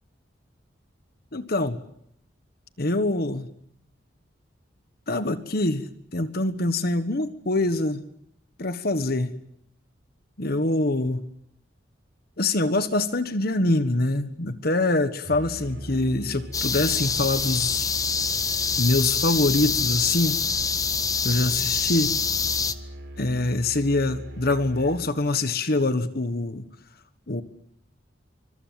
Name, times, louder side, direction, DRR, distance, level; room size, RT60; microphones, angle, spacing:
voice 1, 1.3-1.8 2.8-3.5 5.1-8.0 8.6-9.4 10.4-11.3 12.4-17.9 18.8-20.4 21.2-22.1 23.2-26.7 27.3-27.4, left 2 dB, 55° left, 11 dB, 1.5 m, -24 dB
Musical instrument, 15.2-25.2, equal, 70° right, 5.6 m, -40 dB
sound 1, 16.5-22.7, left 5 dB, 20° left, 1.1 m, -25 dB
26.5 x 25.0 x 7.7 m, 0.72 s
head